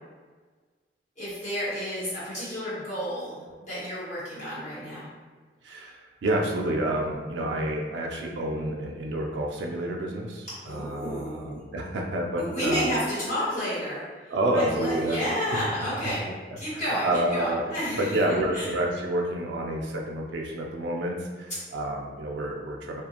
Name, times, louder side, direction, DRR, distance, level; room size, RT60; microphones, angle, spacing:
voice 1, 1.2-5.1 10.6-11.6 12.4-16.2 16.6-18.7, equal, 40° left, -12 dB, 1.4 m, -31 dB
voice 2, 5.6-12.9 14.3-15.2 16.7-17.6 18.0-23.0, right 1 dB, 90° right, 0 dB, 0.4 m, -29 dB
2.5 x 2.3 x 2.8 m, 1.4 s
head